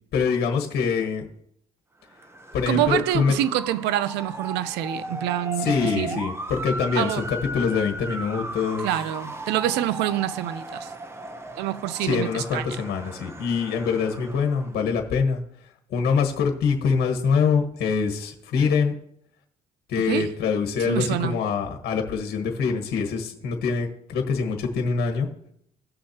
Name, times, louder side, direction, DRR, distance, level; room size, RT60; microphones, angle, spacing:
voice 1, 0.1-1.2 2.5-3.3 5.6-8.9 12.0-15.4 15.9-19.0 19.9-25.3, left 5 dB, 70° left, 1.5 m, -24 dB
Motor vehicle (road) / Siren, 2.1-14.8, right 2 dB, 15° right, 0.8 m, -36 dB
voice 2, 2.7-6.2 7.0-7.2 8.8-10.9 11.6-12.7 20.0-20.3 20.8-21.3, right 12 dB, 85° right, 0.5 m, -26 dB
16.5 x 6.4 x 2.9 m
cardioid pair, 110°, 17 cm